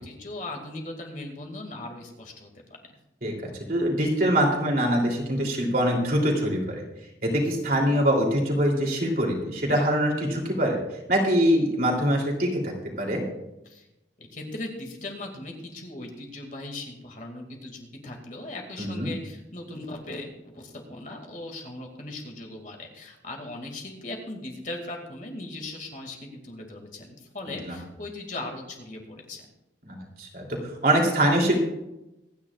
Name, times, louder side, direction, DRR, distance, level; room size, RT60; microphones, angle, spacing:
voice 1, 0.0-3.0 13.7-13.9 14.2-29.4, left 2 dB, 45° left, 2 dB, 2.3 m, -38 dB
voice 2, 3.7-6.8 7.2-10.8 11.1-13.2 18.8-19.1 27.7-27.8 29.9-30.6 30.8-31.6, equal, 50° right, -1 dB, 3.1 m, -23 dB
25.0 x 9.9 x 2.5 m, 0.94 s
head